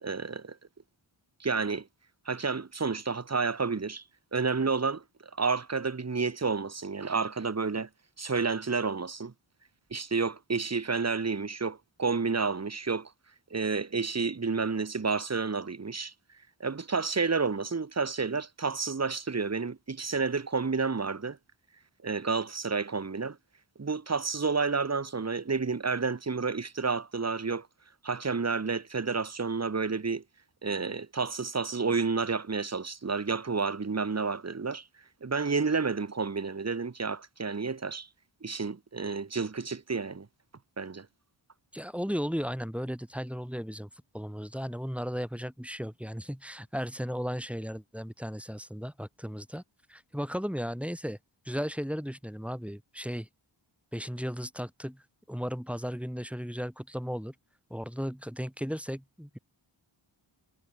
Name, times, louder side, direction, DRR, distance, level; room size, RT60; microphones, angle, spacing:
voice 1, 0.0-0.6 1.4-1.9 2.3-4.0 4.3-5.0 5.4-7.9 8.2-9.3 9.9-13.1 13.5-16.1 16.6-21.4 22.0-23.4 23.8-27.7 28.0-30.2 30.6-34.8 35.2-38.1 38.4-40.3 40.8-41.1, right 4 dB, 30° right, 1.1 m, -30 dB
voice 2, 41.7-43.9 44.1-49.6 49.9-51.2 51.5-53.3 53.9-55.0 55.3-57.3 57.7-59.4, equal, 5° right, 3.7 m, -35 dB
wide cardioid pair, 55°, 48 cm